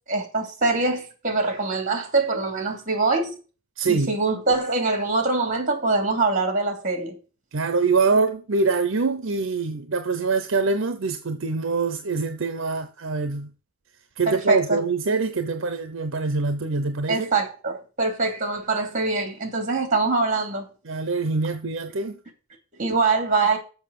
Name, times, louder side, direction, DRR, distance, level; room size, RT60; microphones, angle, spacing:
voice 1, 0.1-3.3 3.9-7.2 14.3-14.8 17.1-20.7 22.8-23.6, right 3 dB, 40° right, 2.9 m, -24 dB
voice 2, 3.8-4.1 7.5-13.5 14.2-17.3 20.9-22.2, right 4 dB, 65° right, 0.7 m, -24 dB
7.3 x 5.9 x 6.9 m
head